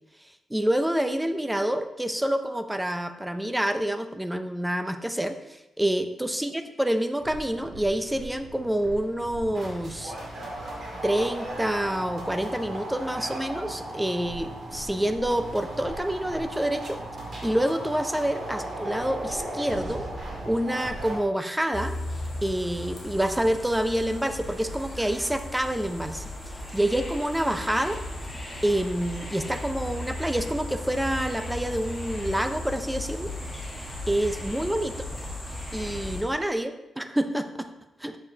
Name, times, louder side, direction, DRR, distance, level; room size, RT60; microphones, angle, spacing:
voice 1, 0.5-10.1 11.0-17.0 17.4-20.1 20.5-22.0 22.4-26.2 26.7-28.0 28.6-33.3 34.1-34.9 35.7-37.7 38.0-38.2, right 1 dB, 5° right, 8 dB, 0.4 m, -27 dB
sound 1, 7.2-21.2, right 1 dB, 45° right, 2.1 m, -37 dB
sound 2, 21.7-36.2, left 1 dB, 15° left, 1.2 m, -36 dB
7.2 x 6.9 x 2.7 m, 0.93 s
wide cardioid pair, 155°, 0 cm